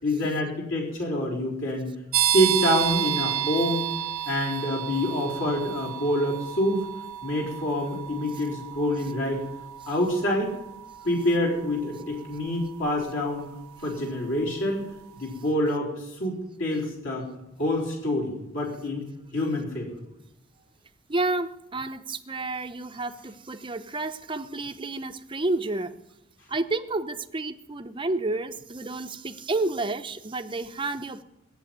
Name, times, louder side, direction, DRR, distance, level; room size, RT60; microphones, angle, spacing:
voice 1, 0.0-1.9 2.2-3.9 4.2-6.9 7.2-9.4 9.9-10.5 11.0-13.5 13.8-14.9 15.2-17.3 17.6-19.1 19.3-19.9, left 1 dB, 60° left, 4.0 m, -26 dB
sound 1, 2.1-14.7, right 11 dB, 85° right, 0.7 m, -32 dB
voice 2, 21.1-25.9 26.5-31.2, right 2 dB, 25° right, 0.6 m, -30 dB
18.0 x 7.6 x 9.4 m
head